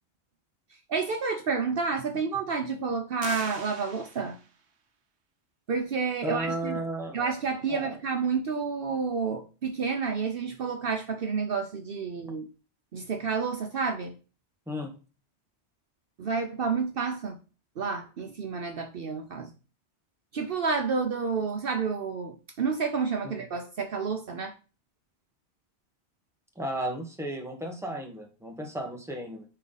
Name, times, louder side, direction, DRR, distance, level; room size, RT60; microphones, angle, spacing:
voice 1, 0.9-4.4 5.7-6.8 7.1-12.5 12.9-14.1 16.2-17.4 17.8-19.5 20.3-24.5, right 5 dB, 60° right, 0.9 m, -30 dB
sound 1, 3.2-4.6, right 5 dB, 85° right, 1.2 m, -41 dB
voice 2, 6.2-7.2 7.7-8.0 14.7-14.9 26.5-29.4, right 1 dB, ahead, 1.5 m, -34 dB
9.8 x 3.6 x 4.0 m
omnidirectional pair, 1.1 m